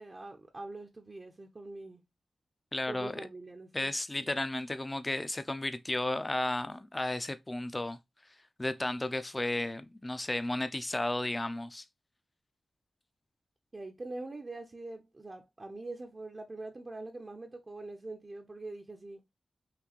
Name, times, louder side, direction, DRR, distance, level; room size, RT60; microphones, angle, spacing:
voice 1, 0.0-2.0 2.9-4.4 13.7-19.2, right 2 dB, 35° right, 0.8 m, -44 dB
voice 2, 2.7-3.3 3.7-8.0 8.6-11.8, left 1 dB, 20° left, 0.5 m, -33 dB
5.9 x 2.7 x 2.9 m
wide cardioid pair, 80°, 0 cm